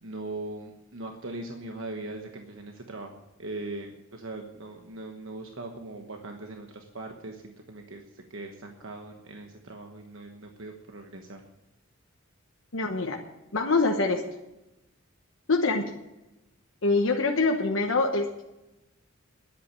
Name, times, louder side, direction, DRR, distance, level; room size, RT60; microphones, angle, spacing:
voice 1, 0.0-11.4, right 2 dB, 70° right, 3 dB, 1.2 m, -40 dB
voice 2, 12.7-13.2 13.5-14.2 15.5-15.9 16.8-18.4, left 3 dB, 70° left, 2 dB, 1.1 m, -24 dB
10.5 x 8.2 x 9.7 m, 0.95 s
head